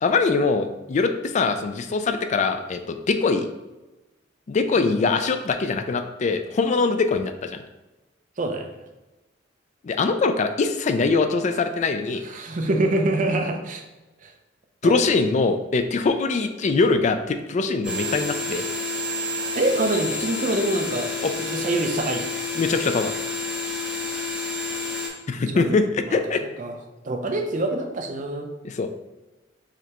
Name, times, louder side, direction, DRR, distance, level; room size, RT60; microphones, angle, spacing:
voice 1, 0.0-3.5 4.5-7.6 9.8-12.2 14.8-18.7 21.2-21.3 22.6-23.1 25.3-26.4 28.6-28.9, left 4 dB, 40° left, 8 dB, 0.3 m, -22 dB
voice 2, 4.7-5.1 8.4-8.7 12.2-13.8 14.2-14.3 14.8-15.0 19.6-21.1 21.4-22.3 25.5-25.8 26.0-26.3 26.6-26.7 27.0-28.5, right 2 dB, 45° right, 4 dB, 0.6 m, -25 dB
sound 1, 17.8-25.1, left 3 dB, 5° right, 0.9 m, -29 dB
4.9 x 3.3 x 2.9 m, 1.1 s
head